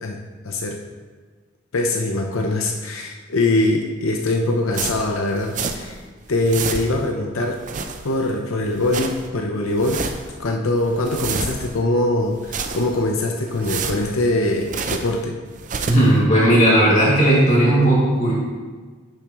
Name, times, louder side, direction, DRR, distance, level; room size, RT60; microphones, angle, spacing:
voice 1, 0.0-0.8 1.7-6.0 6.3-7.6 8.0-10.0 10.4-15.4, left 2 dB, 90° left, 1 dB, 0.7 m, -22 dB
sound 1, 4.7-6.0 6.3-7.1 7.5-8.3 8.7-9.3 9.7-10.4 10.8-11.8 12.3-13.1 13.5-15.2 15.5-16.2, right 5 dB, 40° right, 0.5 m, -30 dB
voice 2, 15.9-18.3, right 1 dB, 35° left, -6 dB, 2.3 m, -15 dB
10.0 x 7.1 x 3.0 m, 1.5 s
head